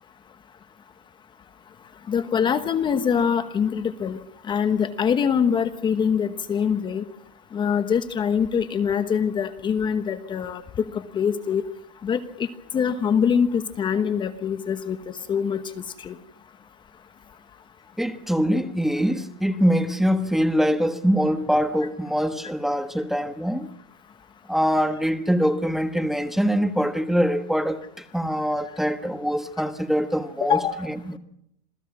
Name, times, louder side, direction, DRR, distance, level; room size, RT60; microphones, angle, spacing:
voice 1, 2.1-4.2 4.5-7.0 7.5-10.6 10.9-11.6 12.0-12.5 12.7-15.0 15.3-15.6 16.0-16.1 30.4-30.7, left 7 dB, 20° left, 1.2 m, -23 dB
voice 2, 18.0-23.7 24.5-31.2, equal, ahead, 1.3 m, -23 dB
27.0 x 17.5 x 6.2 m
supercardioid pair, 145°, 21 cm